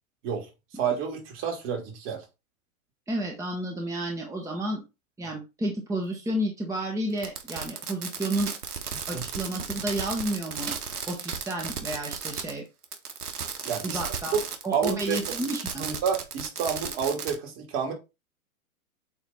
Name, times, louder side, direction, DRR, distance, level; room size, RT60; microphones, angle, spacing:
voice 1, 0.2-2.2 9.1-9.2 13.6-14.0 14.3-14.4 14.7-15.3 15.8-17.9, right 7 dB, 45° right, 2.8 m, -29 dB
voice 2, 3.1-4.8 5.2-8.5 9.1-10.8 11.1-12.6 13.8-14.4 14.6-15.9, right 1 dB, 5° right, 1.2 m, -31 dB
Fireworks, 7.2-12.6 12.8-17.3, right 6 dB, 90° right, 1.4 m, -34 dB
8.3 x 3.2 x 4.2 m
hypercardioid pair, 125°, 44 cm